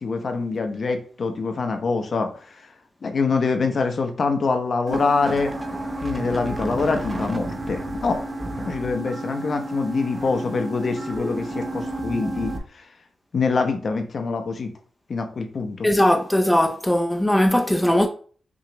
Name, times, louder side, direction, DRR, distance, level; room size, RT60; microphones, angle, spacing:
voice 1, 0.0-2.3 3.0-5.5 6.0-8.2 8.6-12.5 13.3-14.7 15.1-15.9, left 4 dB, 50° left, 0.7 m, -24 dB
sound 1, 4.9-12.6, right 1 dB, 25° right, 0.8 m, -31 dB
voice 2, 15.8-18.1, left 1 dB, 5° left, 0.5 m, -19 dB
6.1 x 2.4 x 3.0 m
wide cardioid pair, 105°, 0 cm